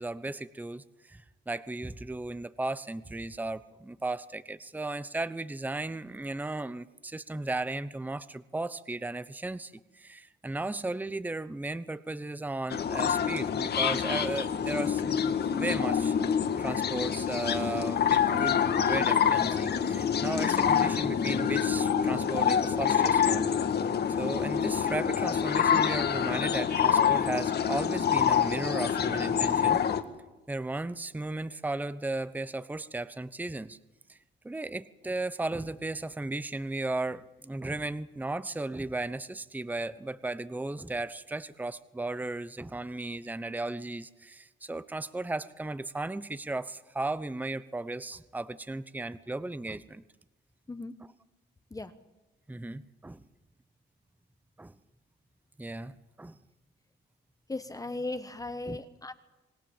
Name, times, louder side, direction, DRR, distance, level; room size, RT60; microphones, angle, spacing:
voice 1, 0.0-16.2 16.6-18.6 18.9-23.5 24.2-29.8 30.5-33.8 34.1-34.2 34.4-50.0 52.5-53.2 54.6-54.7 55.6-56.4 58.7-58.8, right 2 dB, 10° right, 15 dB, 0.9 m, -35 dB
sound 1, 12.7-30.0, left 8 dB, 55° left, 1.8 m, -26 dB
voice 2, 57.5-59.1, left 2 dB, 15° left, 9 dB, 1.2 m, -37 dB
27.0 x 19.5 x 7.3 m, 1.0 s
cardioid pair, 90°, 20 cm